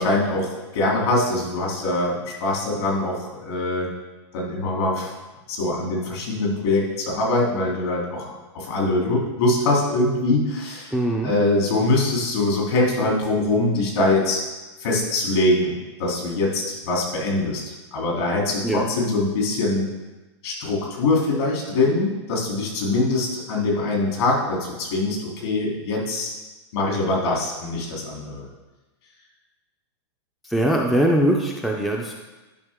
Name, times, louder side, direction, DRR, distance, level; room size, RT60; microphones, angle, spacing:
voice 1, 0.0-3.9 4.3-5.1 5.5-10.9 11.2-14.4 14.8-17.6 17.9-20.0 20.4-26.3 26.7-28.4, left 2 dB, 65° left, -2 dB, 3.1 m, -23 dB
voice 2, 10.9-11.3 18.6-18.8 30.4-32.1, right 1 dB, ahead, 0 dB, 0.4 m, -21 dB
11.0 x 5.3 x 3.6 m, 1.1 s
supercardioid pair, 160°, 15 cm